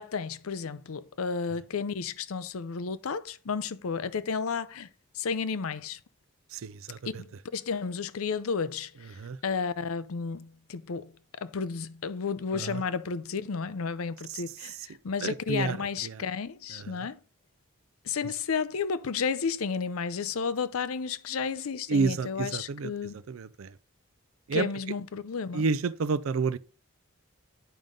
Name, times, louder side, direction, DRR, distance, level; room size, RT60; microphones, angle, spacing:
voice 1, 0.0-4.9 5.1-6.0 7.2-17.2 18.0-23.1 24.5-25.6, left 5 dB, 80° left, 0.5 m, -32 dB
voice 2, 6.5-7.2 9.0-9.4 12.5-12.8 14.3-14.9 15.2-16.2 16.7-17.1 18.2-18.3 21.9-23.8 24.5-24.7 25.5-26.6, right 4 dB, 70° right, 0.4 m, -31 dB
9.1 x 5.2 x 3.7 m
head